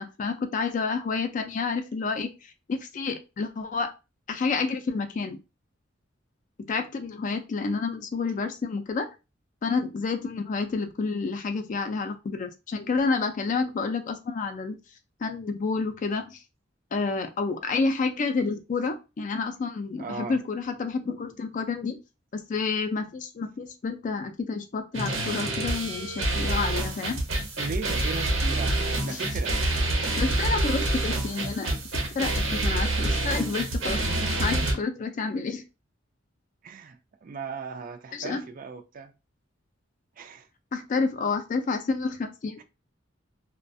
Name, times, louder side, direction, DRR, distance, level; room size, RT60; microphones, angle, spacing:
voice 1, 0.0-2.3 2.7-3.9 4.3-5.4 6.7-9.1 9.6-14.8 15.2-16.4 16.9-22.0 22.3-27.2 29.1-29.2 30.2-35.6 38.1-38.5 40.7-42.6, left 4 dB, 40° left, 0.3 m, -29 dB
voice 2, 20.0-20.4 27.6-29.6 29.9-30.2 34.1-34.5 36.6-39.1 40.2-40.5 42.6-42.7, right 5 dB, 45° right, 0.4 m, -37 dB
Metal Intro, 24.9-34.7, right 2 dB, 80° right, 1.0 m, -27 dB
2.3 x 2.1 x 2.6 m
head